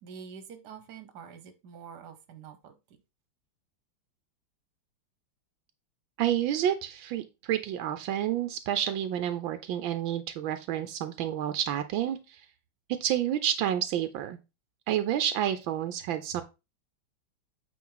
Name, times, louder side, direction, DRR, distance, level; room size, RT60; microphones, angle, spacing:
voice 1, 0.0-2.7, right 7 dB, 60° right, 9 dB, 1.6 m, -46 dB
voice 2, 6.2-12.4 12.9-14.4 14.9-16.4, right 11 dB, 85° right, 10 dB, 1.4 m, -29 dB
8.5 x 4.8 x 3.9 m, 0.26 s
omnidirectional pair, 2.1 m